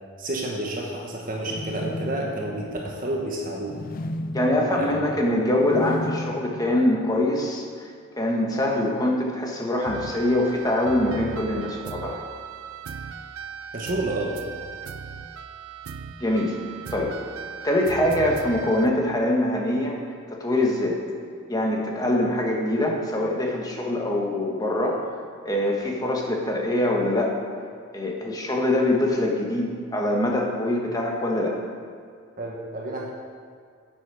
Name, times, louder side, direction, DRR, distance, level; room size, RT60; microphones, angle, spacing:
voice 1, 0.2-3.8 4.7-5.0 13.7-14.4 32.4-33.1, right 1 dB, 40° right, -1 dB, 1.2 m, -30 dB
sound 1, 1.4-7.4, left 1 dB, 40° left, 0.4 m, -35 dB
voice 2, 4.3-12.2 16.2-16.6 16.9-17.1 17.6-20.0 20.3-21.0 21.5-25.1 25.4-27.3 27.9-31.5, left 1 dB, 15° left, -1 dB, 1.3 m, -24 dB
sound 2, 9.8-18.9, right 6 dB, 85° right, 0.5 m, -37 dB
10.5 x 7.8 x 4.8 m, 2.2 s
head